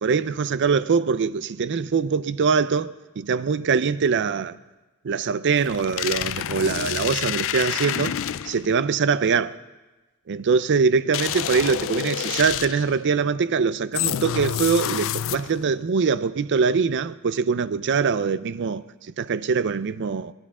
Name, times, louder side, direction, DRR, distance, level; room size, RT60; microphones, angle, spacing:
voice 1, 0.0-4.5 5.0-8.1 8.4-9.6 10.3-18.8 19.2-20.3, right 5 dB, 55° right, 0.5 m, -23 dB
sound 1, 5.6-8.7 11.1-13.0 13.9-15.7, left 10 dB, 65° left, 0.4 m, -28 dB
29.0 x 12.5 x 3.7 m
head